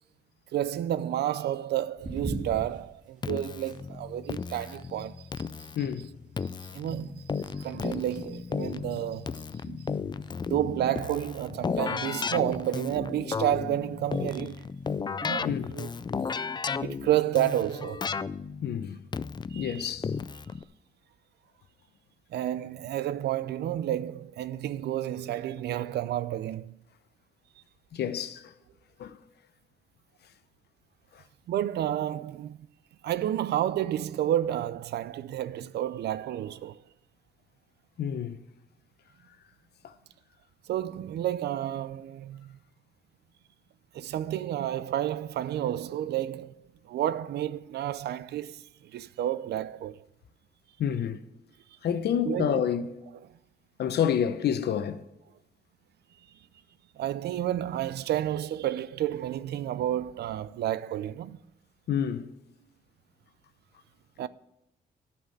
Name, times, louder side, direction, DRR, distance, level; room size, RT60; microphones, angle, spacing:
voice 1, 0.5-5.5 6.6-9.9 10.5-14.6 15.2-15.9 16.8-18.1 19.5-19.9 22.3-26.7 31.5-32.6 33.0-36.8 40.7-42.6 43.9-46.6 46.8-50.0 52.2-52.7 57.0-61.4 64.2-64.3, right 12 dB, 90° right, 0.5 m, -31 dB
sound 1, 1.9-18.0, right 2 dB, 50° right, 2.6 m, -47 dB
Keyboard (musical), 3.2-20.6, left 5 dB, 25° left, 0.4 m, -34 dB
voice 2, 5.8-6.1 15.4-15.7 18.6-19.0 19.5-20.1 27.9-28.5 29.0-29.2 38.0-38.4 39.8-39.9 50.8-51.2 51.8-53.0 53.8-55.0 61.9-62.3, left 8 dB, 80° left, 0.9 m, -28 dB
11.0 x 6.0 x 7.6 m
cardioid pair, 100°, 17 cm